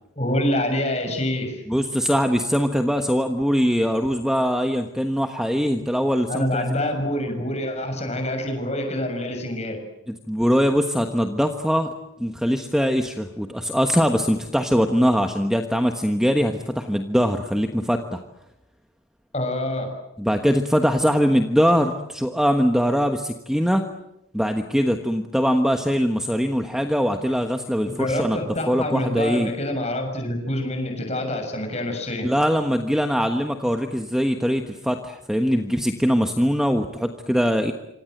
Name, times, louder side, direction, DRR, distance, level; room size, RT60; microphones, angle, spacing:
voice 1, 0.2-1.6 6.3-9.8 19.3-20.0 27.8-32.3, left 1 dB, 30° left, 5 dB, 6.8 m, -26 dB
voice 2, 1.7-6.6 10.3-11.9 12.2-18.2 20.2-23.8 24.3-29.5 32.2-37.7, equal, 5° right, 5 dB, 1.2 m, -22 dB
26.5 x 26.0 x 7.9 m, 0.88 s
head